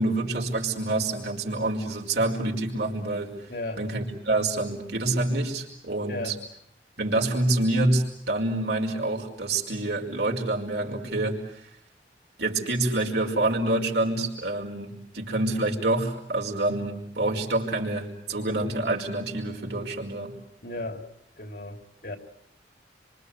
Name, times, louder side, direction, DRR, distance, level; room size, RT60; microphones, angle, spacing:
voice 1, 0.0-3.3 3.8-6.4 7.0-11.7 12.4-20.3, right 2 dB, 65° right, 0 dB, 5.1 m, -27 dB
voice 2, 3.5-3.8 6.1-6.4 20.6-21.1 21.4-22.2, left 2 dB, 55° left, 6 dB, 3.2 m, -35 dB
27.0 x 25.5 x 8.1 m, 0.70 s
head